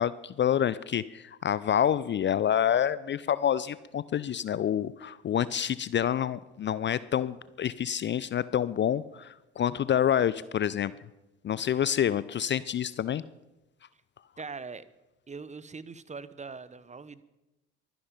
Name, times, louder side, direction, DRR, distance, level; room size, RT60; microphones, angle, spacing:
voice 1, 0.0-10.9 11.4-13.2, left 9 dB, 30° left, 18 dB, 0.6 m, -27 dB
voice 2, 14.4-14.8 15.3-17.2, right 4 dB, 20° right, 17 dB, 0.9 m, -41 dB
23.5 x 10.5 x 5.2 m, 1.0 s
figure-of-eight pair, 55°, 35 cm